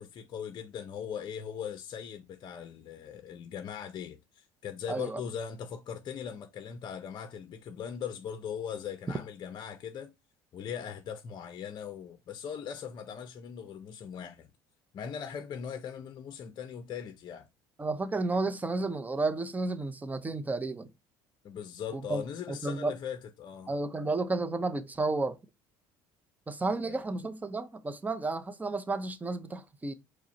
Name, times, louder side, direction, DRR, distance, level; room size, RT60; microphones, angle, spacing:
voice 1, 0.0-10.1 10.5-14.5 14.9-17.5 21.4-23.7 26.8-27.1, left 8 dB, 45° left, 0.6 m, -40 dB
voice 2, 4.9-5.2 17.8-20.9 21.9-22.9 23.7-25.4 26.5-29.9, right 3 dB, 15° right, 0.6 m, -32 dB
4.8 x 2.1 x 4.0 m
supercardioid pair, 90°, 11 cm